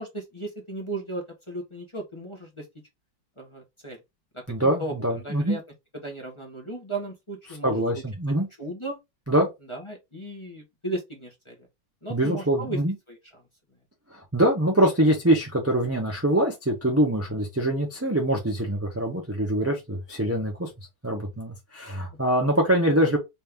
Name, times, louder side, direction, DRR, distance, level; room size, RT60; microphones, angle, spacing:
voice 1, 0.0-2.7 3.4-4.0 4.3-5.6 5.9-7.8 8.6-9.0 9.7-11.6 12.0-12.8 13.1-13.4, right 2 dB, 20° left, 1.1 m, -36 dB
voice 2, 4.5-5.6 7.6-7.9 8.2-8.5 9.3-9.5 12.1-12.9 14.3-20.7 21.0-23.2, right 1 dB, 10° right, 0.7 m, -24 dB
4.3 x 2.8 x 3.5 m
omnidirectional pair, 2.1 m